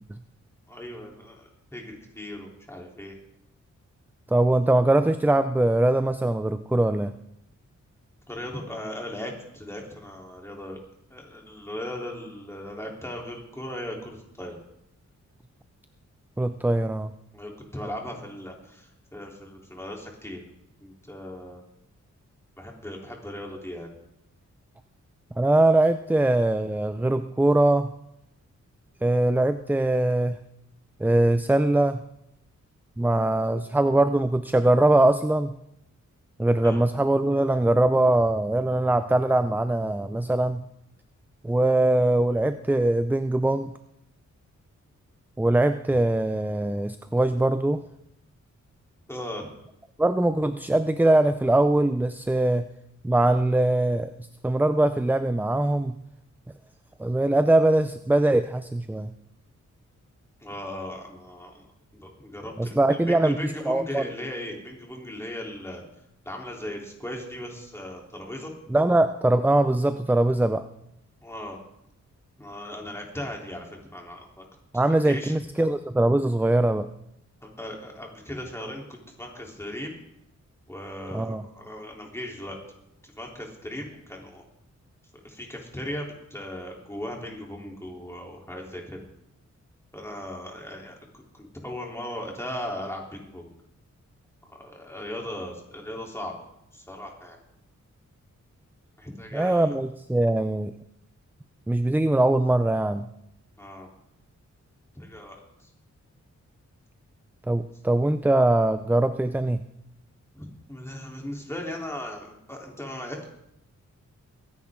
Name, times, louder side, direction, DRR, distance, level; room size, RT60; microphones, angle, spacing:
voice 1, 0.7-3.1 8.3-10.8 11.1-14.6 17.3-20.4 20.8-21.6 22.6-23.9 36.6-36.9 49.1-49.5 60.4-61.6 62.0-65.8 66.3-68.5 71.2-71.6 72.4-74.4 75.0-75.6 77.4-78.9 79.2-79.9 80.7-82.6 83.0-84.4 85.2-89.0 89.9-90.9 91.3-93.5 94.5-96.3 96.7-97.4 99.0-99.7 103.6-103.9 105.0-105.7 110.3-113.3, left 1 dB, 10° left, 0 dB, 3.4 m, -37 dB
voice 2, 4.3-7.1 16.4-17.1 25.4-27.9 29.0-30.4 31.0-32.0 33.0-35.6 36.4-40.6 41.4-43.7 45.4-47.8 50.0-52.7 53.0-54.1 54.4-55.9 57.0-59.1 62.6-64.0 68.7-70.7 74.7-76.9 81.1-81.4 99.3-100.7 101.7-103.1 107.5-109.6, right 1 dB, 5° right, 11 dB, 0.5 m, -22 dB
23.0 x 10.5 x 3.7 m, 0.80 s
wide cardioid pair, 95°, 29 cm